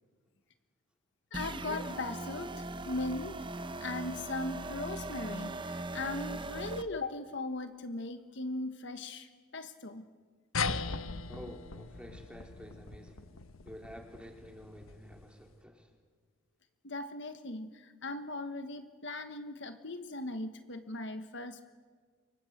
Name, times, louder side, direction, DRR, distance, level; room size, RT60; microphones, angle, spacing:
voice 1, 1.3-3.4 3.8-10.1 16.8-21.6, left 2 dB, 60° left, 8 dB, 1.3 m, -39 dB
sound 1, 1.3-6.8, right 2 dB, 25° right, 0.8 m, -40 dB
sound 2, 10.5-15.4, left 4 dB, 80° left, 1.2 m, -39 dB
voice 2, 11.3-13.3 13.6-15.9, equal, 5° right, 2 dB, 3.5 m, -50 dB
29.0 x 24.5 x 8.0 m, 1.5 s
head